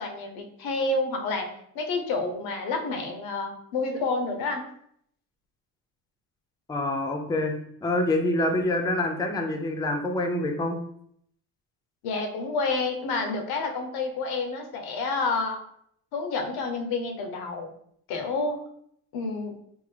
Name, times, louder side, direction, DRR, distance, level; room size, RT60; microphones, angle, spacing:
voice 1, 0.0-1.5 1.7-4.7 12.0-15.6 16.1-17.7 18.1-18.6 19.1-19.5, left 3 dB, 90° left, 4 dB, 0.7 m, -29 dB
voice 2, 6.7-7.5 7.8-10.8, left 1 dB, 10° left, 4 dB, 0.4 m, -26 dB
3.6 x 2.0 x 3.2 m, 0.68 s
cardioid pair, 100°, 37 cm